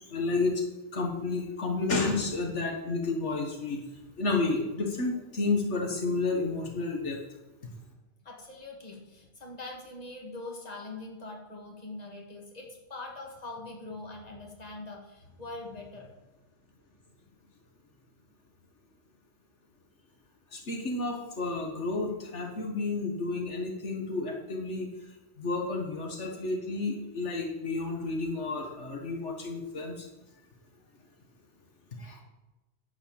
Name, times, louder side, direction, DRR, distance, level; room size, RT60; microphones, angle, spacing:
voice 1, 0.1-0.6 0.9-3.8 4.2-7.2 20.5-24.9 25.4-30.1 32.0-32.2, left 3 dB, 70° left, 1 dB, 1.6 m, -31 dB
voice 2, 8.2-16.1, left 2 dB, 35° left, 0 dB, 1.8 m, -43 dB
10.5 x 4.9 x 7.3 m, 1.1 s
omnidirectional pair, 1.2 m